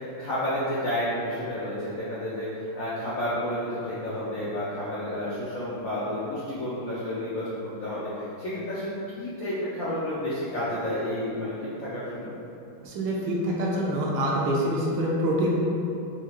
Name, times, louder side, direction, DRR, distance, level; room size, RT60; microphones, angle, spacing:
voice 1, 0.0-12.3, left 1 dB, 70° left, -10 dB, 0.8 m, -31 dB
voice 2, 12.8-15.5, equal, 75° right, -4 dB, 1.3 m, -26 dB
4.8 x 2.7 x 2.9 m, 2.8 s
omnidirectional pair, 2.2 m